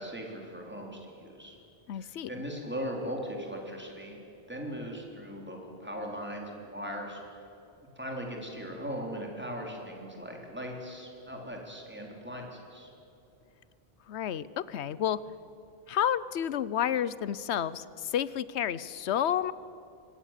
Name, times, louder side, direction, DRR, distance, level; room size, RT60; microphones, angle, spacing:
voice 1, 0.0-1.6 1.9-4.2 4.5-7.5 8.0-12.9, equal, 10° right, 0 dB, 3.7 m, -39 dB
voice 2, 1.9-2.3 14.1-15.2 15.9-19.5, left 10 dB, 90° left, 18 dB, 1.0 m, -30 dB
24.5 x 18.5 x 7.5 m, 2.8 s
omnidirectional pair, 1.1 m